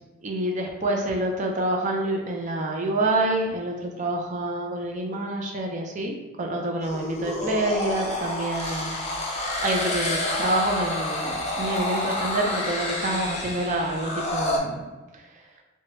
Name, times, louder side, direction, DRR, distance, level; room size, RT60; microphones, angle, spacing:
voice 1, 0.2-9.0 9.6-14.9, right 1 dB, 40° right, 1 dB, 0.4 m, -27 dB
sound 1, 6.8-14.6, left 1 dB, 30° left, 0.4 m, -29 dB
2.9 x 2.2 x 2.9 m, 1.2 s
head